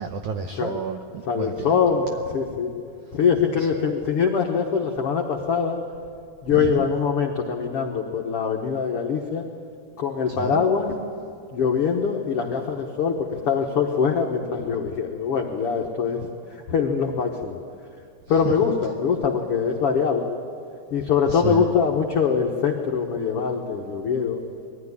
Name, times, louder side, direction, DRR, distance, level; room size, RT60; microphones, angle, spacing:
voice 1, 0.0-2.1 3.5-3.7 6.6-6.8 10.3-10.6 18.6-18.7 21.3-21.6, right 6 dB, 85° right, 6 dB, 1.7 m, -31 dB
voice 2, 1.3-2.7 3.1-5.8 6.4-9.4 10.0-10.9 11.5-17.6 18.3-20.2 20.9-24.4, left 6 dB, 90° left, 1 dB, 1.2 m, -23 dB
21.5 x 14.5 x 9.7 m, 2.4 s
omnidirectional pair, 4.5 m